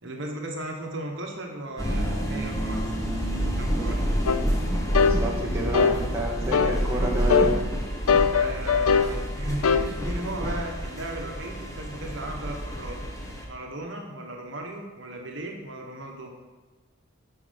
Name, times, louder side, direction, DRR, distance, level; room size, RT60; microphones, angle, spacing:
voice 1, 0.0-3.0 3.3-4.0 8.3-13.0 13.5-16.3, right 1 dB, 55° right, 1 dB, 1.2 m, -36 dB
sound 1, 1.8-13.5, equal, 15° left, 1.1 m, -29 dB
sound 2, 4.3-4.4 4.9-5.2 5.7-6.0 6.5-6.8 7.3-7.5 8.1-9.1 9.6-9.9, left 6 dB, 75° left, 0.5 m, -20 dB
voice 2, 5.0-7.7, right 2 dB, 10° right, -3 dB, 1.0 m, -29 dB
9.7 x 4.6 x 5.2 m, 1.3 s
head